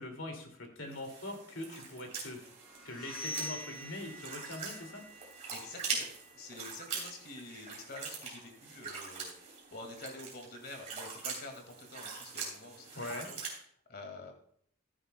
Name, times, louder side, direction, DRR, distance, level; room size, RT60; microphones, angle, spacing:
voice 1, 0.0-2.5 2.8-5.0 12.9-13.3, left 2 dB, 65° left, 3 dB, 2.3 m, -42 dB
sound 1, 0.9-13.6, right 4 dB, 30° right, 3.3 m, -43 dB
sound 2, 2.6-8.3, equal, ahead, 3.9 m, -47 dB
voice 2, 5.5-13.4 13.9-14.3, left 2 dB, 45° left, 4 dB, 2.0 m, -48 dB
14.5 x 10.0 x 2.2 m, 0.63 s
head